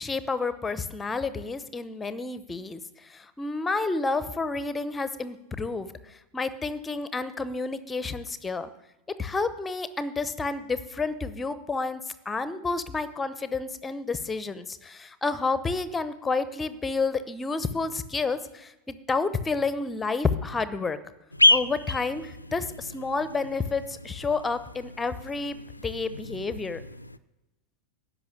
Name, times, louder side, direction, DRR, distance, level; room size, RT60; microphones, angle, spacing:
voice 1, 0.0-8.7 9.2-21.0 21.5-26.8, left 4 dB, 15° left, 14 dB, 0.8 m, -30 dB
sound 1, 21.3-27.2, left 2 dB, 85° left, 0.4 m, -29 dB
10.5 x 6.4 x 8.8 m, 0.99 s
figure-of-eight pair, 90°, 0 cm